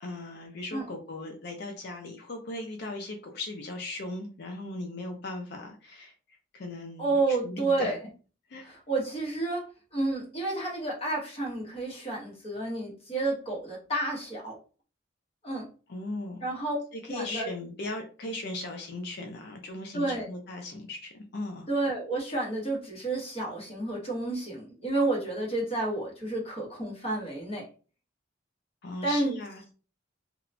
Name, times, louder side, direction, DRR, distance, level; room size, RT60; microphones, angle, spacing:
voice 1, 0.0-6.1 6.5-8.0 8.5-8.7 15.9-16.4 17.1-21.7 28.8-29.7, left 2 dB, 60° left, 3 dB, 0.5 m, -38 dB
voice 2, 7.0-7.9 8.6-14.6 15.4-15.7 16.4-16.8 17.1-17.5 19.9-20.3 21.7-27.6 29.0-29.3, right 2 dB, 30° left, -3 dB, 1.0 m, -30 dB
2.9 x 2.1 x 2.5 m, 0.37 s
head